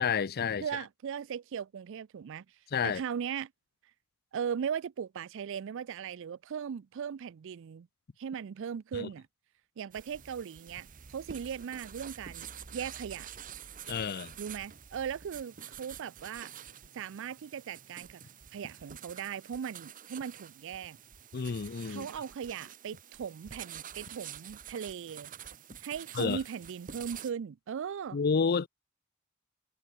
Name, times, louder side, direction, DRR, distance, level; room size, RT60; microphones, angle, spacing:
voice 1, 0.0-0.6 2.7-3.0 8.9-9.1 13.9-14.3 21.3-22.1 26.1-26.4 28.1-28.7, left 6 dB, 45° left, 0.5 m, -30 dB
voice 2, 0.6-2.4 2.8-3.5 4.3-7.9 8.2-9.3 9.8-13.3 14.4-16.5 16.9-18.2 18.5-21.0 21.9-25.3 25.8-28.2, right 7 dB, 65° right, 0.4 m, -38 dB
sound 1, 9.9-27.3, right 9 dB, 40° right, 0.8 m, -48 dB
head